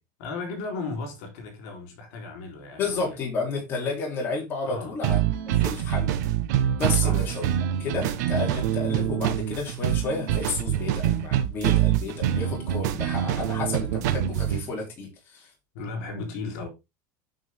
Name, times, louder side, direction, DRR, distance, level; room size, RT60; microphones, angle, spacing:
voice 1, 0.2-3.2 4.6-5.0 6.9-7.3 15.7-16.7, left 3 dB, 55° left, 3.8 m, -35 dB
voice 2, 2.8-5.2 5.5-6.1 6.8-7.4 7.8-15.5, left 3 dB, 25° left, 3.2 m, -31 dB
sound 1, 5.0-14.6, right 11 dB, 70° right, 1.3 m, -25 dB
9.4 x 5.4 x 3.6 m
supercardioid pair, 175°, 10 cm